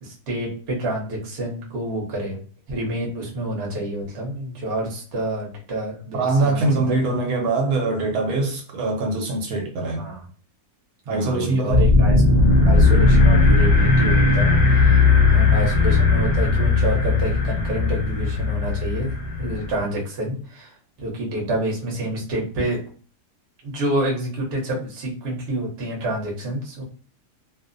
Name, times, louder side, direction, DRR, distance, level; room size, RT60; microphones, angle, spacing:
voice 1, 0.0-2.4 2.7-7.1 10.0-10.2 11.1-12.1 12.7-22.8 23.6-26.8, right 1 dB, 50° right, -1 dB, 0.9 m, -28 dB
voice 2, 6.1-10.1 11.1-11.8, right 3 dB, 75° right, 2 dB, 1.1 m, -23 dB
sound 1, 11.7-19.8, left 3 dB, 75° left, 0.4 m, -17 dB
2.7 x 2.0 x 2.4 m, 0.41 s
omnidirectional pair, 1.7 m